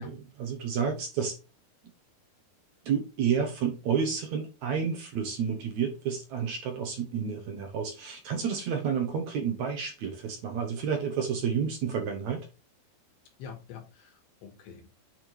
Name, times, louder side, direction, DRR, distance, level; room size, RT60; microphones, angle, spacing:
voice 1, 0.0-1.4 2.9-12.5, right 7 dB, 65° right, 1.9 m, -30 dB
voice 2, 13.4-14.9, left 6 dB, 75° left, 3.8 m, -46 dB
8.9 x 3.6 x 4.5 m
omnidirectional pair, 4.8 m